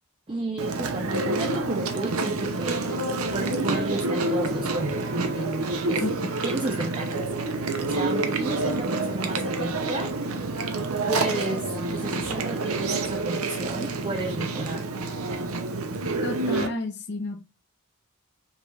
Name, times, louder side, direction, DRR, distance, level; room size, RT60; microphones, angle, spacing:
voice 1, 0.3-3.0 3.3-6.0 6.4-7.2 7.8-10.1 11.1-15.0, right 2 dB, 25° right, 0.5 m, -32 dB
Chewing mastication, 0.6-16.7, right 2 dB, 85° right, 0.7 m, -28 dB
voice 2, 16.2-17.4, left 3 dB, 50° left, 0.7 m, -31 dB
5.2 x 2.5 x 3.3 m
head